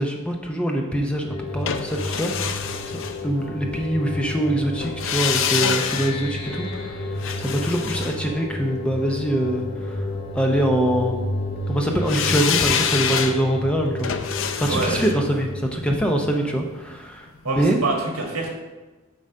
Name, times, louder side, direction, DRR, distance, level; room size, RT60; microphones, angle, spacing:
voice 1, 0.0-10.1 10.3-11.2 11.7-14.3 14.6-17.8, right 1 dB, 5° left, 1 dB, 0.5 m, -24 dB
sound 1, 1.3-16.7, left 2 dB, 45° left, 1.5 m, -31 dB
sound 2, 1.7-3.8 4.8-9.1 12.1-17.1 17.4-17.5, left 7 dB, 60° left, 0.5 m, -27 dB
voice 2, 14.6-15.2 17.4-18.6, right 3 dB, 80° right, 0 dB, 1.5 m, -26 dB
7.2 x 3.9 x 5.4 m, 1.2 s
head